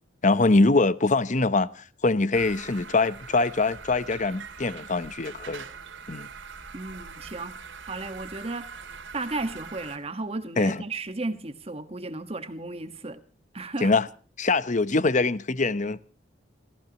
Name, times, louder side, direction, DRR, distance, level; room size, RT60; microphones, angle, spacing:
voice 1, 0.2-5.6 6.1-6.3 10.6-10.8 13.8-14.1 14.4-16.0, left 3 dB, 40° left, 0.8 m, -23 dB
sound 1, 2.3-10.0, right 5 dB, 85° right, 2.6 m, -43 dB
voice 2, 6.7-8.7 9.1-13.2 13.5-13.9, right 2 dB, 35° right, 1.4 m, -34 dB
28.0 x 15.5 x 2.9 m
head